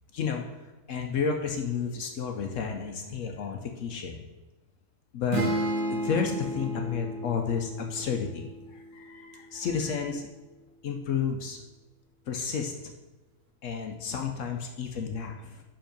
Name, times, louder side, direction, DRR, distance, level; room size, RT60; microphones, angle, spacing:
voice 1, 0.1-0.4 0.9-4.2 5.1-5.5 5.9-10.3 10.8-11.6 12.3-12.7 13.6-15.6, left 6 dB, 65° left, 3 dB, 0.9 m, -31 dB
sound 1, 5.3-9.0, right 1 dB, 70° right, 1.9 m, -32 dB
5.5 x 5.2 x 5.1 m, 1.1 s
omnidirectional pair, 1.7 m